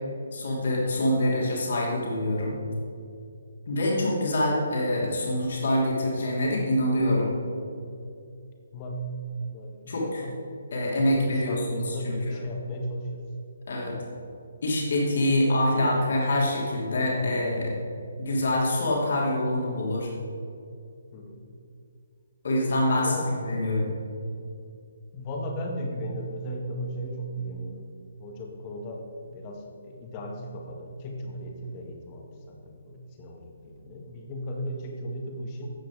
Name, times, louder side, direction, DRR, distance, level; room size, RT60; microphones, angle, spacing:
voice 1, 0.3-2.6 3.7-7.3 9.9-10.3 10.7-12.4 13.7-14.0 14.6-17.8 18.2-20.1 22.4-23.9, left 1 dB, 50° left, -3 dB, 3.0 m, -25 dB
voice 2, 8.7-9.1 9.5-13.2 21.1-21.5 23.0-23.3 25.1-27.9 28.2-35.7, equal, 25° left, 1 dB, 1.8 m, -36 dB
15.0 x 8.9 x 4.9 m, 2.5 s
figure-of-eight pair, 135°, 0 cm